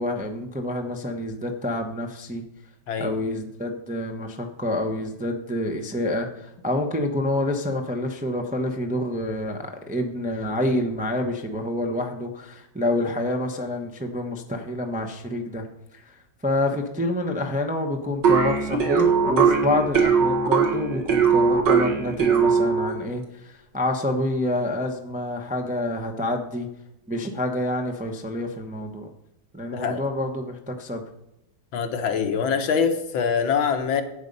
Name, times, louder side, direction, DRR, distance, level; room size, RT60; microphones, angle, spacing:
voice 1, 0.0-2.4 3.0-15.7 15.9-16.2 16.4-26.7 27.1-29.1 29.5-31.0, left 1 dB, 10° right, 3 dB, 0.5 m, -27 dB
voice 2, 2.9-3.2 29.7-30.0 31.7-34.0, left 6 dB, 80° left, 7 dB, 1.8 m, -24 dB
sound 1, 18.2-23.0, right 6 dB, 65° right, 2.2 m, -20 dB
12.0 x 8.3 x 5.4 m, 0.86 s
omnidirectional pair, 2.1 m